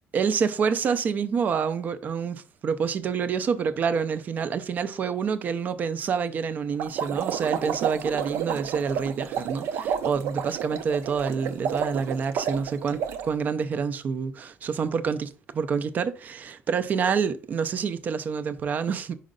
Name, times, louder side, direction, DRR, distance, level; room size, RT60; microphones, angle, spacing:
voice 1, 0.1-19.1, right 6 dB, 40° right, 0.5 m, -27 dB
sound 1, 6.8-13.3, right 8 dB, 80° right, 0.7 m, -30 dB
5.2 x 5.0 x 3.8 m
cardioid pair, 170°, 4 cm